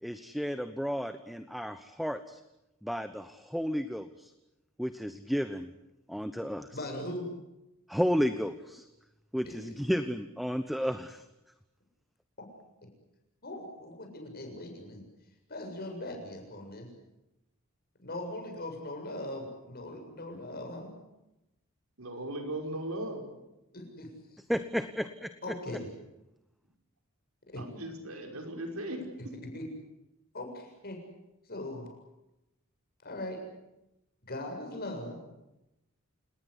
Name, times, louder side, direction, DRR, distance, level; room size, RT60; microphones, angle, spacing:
voice 1, 0.0-2.4 2.8-4.3 4.8-5.7 6.1-6.8 7.9-8.8 9.3-11.2 24.5-25.5, equal, ahead, 10 dB, 1.0 m, -32 dB
voice 2, 6.7-7.3 9.4-9.8 12.4-12.5 13.4-15.1 15.5-16.9 18.0-20.9 23.7-24.4 25.4-25.9 27.5-27.6 29.5-29.6 30.3-31.0 31.5-31.9 33.0-33.4 34.2-35.2, left 1 dB, 45° left, 3 dB, 7.4 m, -40 dB
voice 3, 22.0-23.2 27.6-29.0, right 1 dB, 75° right, 4 dB, 5.5 m, -37 dB
28.5 x 19.5 x 8.2 m, 0.93 s
head